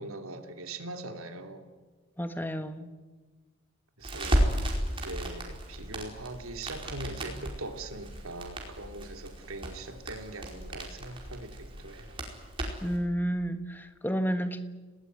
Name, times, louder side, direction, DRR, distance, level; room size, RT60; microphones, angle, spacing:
voice 1, 0.0-1.7 4.0-4.4 4.9-12.2, right 2 dB, 80° right, 3.0 m, -41 dB
voice 2, 2.2-2.9 12.8-14.6, equal, 10° left, 1.3 m, -31 dB
Crackle, 4.0-13.0, equal, 25° right, 4.8 m, -34 dB
30.0 x 19.0 x 9.5 m
head